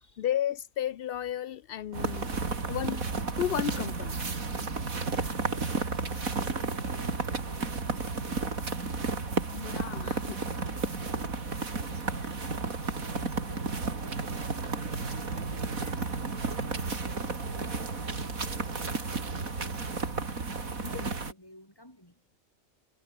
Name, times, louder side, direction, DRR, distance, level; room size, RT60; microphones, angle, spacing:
voice 1, 0.0-2.3 2.7-3.0 3.4-4.2 9.5-10.4 20.9-21.0, left 11 dB, 60° left, 0.6 m, -33 dB
sound 1, 1.9-21.3, right 4 dB, 75° right, 3.3 m, -32 dB
voice 2, 4.7-9.7 10.2-11.4 11.7-14.6 15.0-22.2, left 1 dB, 15° left, 7.0 m, -54 dB
omnidirectional pair, 1.5 m